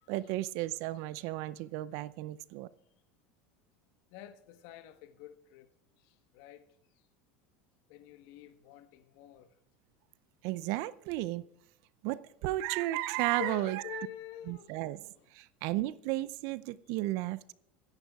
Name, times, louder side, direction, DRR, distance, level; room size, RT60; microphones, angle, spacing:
voice 1, 0.1-2.7 10.4-11.4 12.0-14.1 14.5-17.5, right 16 dB, 60° right, 0.5 m, -34 dB
voice 2, 4.1-5.7 6.0-6.6 7.9-9.5 13.4-14.8 15.2-15.3, left 12 dB, 60° left, 1.2 m, -46 dB
25.0 x 10.5 x 2.4 m
hypercardioid pair, 80°, 6 cm